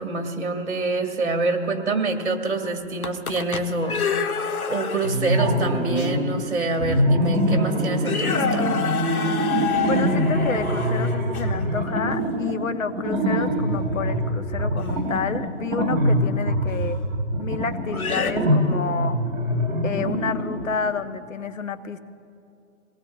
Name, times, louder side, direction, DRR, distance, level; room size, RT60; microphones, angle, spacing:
voice 1, 0.0-4.1 4.7-8.7, right 2 dB, 50° right, 4 dB, 2.0 m, -26 dB
sound 1, 2.8-5.3 6.0-6.1 6.9-7.0 7.4-7.6 8.0-11.6 14.8-15.0 16.7-16.8 17.9-18.3, left 6 dB, 85° left, 1.2 m, -28 dB
sound 2, 5.0-6.4 6.8-20.7, equal, ahead, 1.9 m, -24 dB
voice 2, 9.9-17.0 17.4-19.2 19.8-22.0, left 5 dB, 65° left, 10 dB, 0.9 m, -29 dB
26.5 x 18.5 x 2.4 m, 2.7 s
hypercardioid pair, 175°, 42 cm